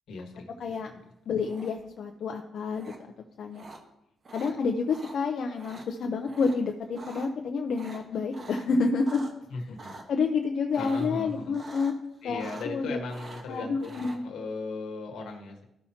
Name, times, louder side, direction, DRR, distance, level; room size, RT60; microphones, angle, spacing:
voice 1, 0.1-0.5 0.9-1.0 9.5-9.9 10.8-11.6 12.2-15.6, left 3 dB, 80° left, 3 dB, 1.4 m, -37 dB
voice 2, 0.6-0.9 1.3-2.9 3.4-3.6 4.3-9.2 9.5-9.7 10.1-11.9 12.2-13.0 13.5-14.2, left 4 dB, 65° left, 2 dB, 0.7 m, -29 dB
sound 1, 1.4-2.0 2.8-3.0 3.5-3.8 4.2-4.5 4.9-5.2 5.5-5.9 6.3-6.6 6.8-7.3 7.7-9.3 9.8-10.0 10.7-11.2 11.5-12.0 12.2-12.8 13.1-14.2, right 3 dB, 45° right, 1.2 m, -45 dB
13.5 x 5.7 x 2.9 m, 0.84 s
cardioid pair, 85°, 0 cm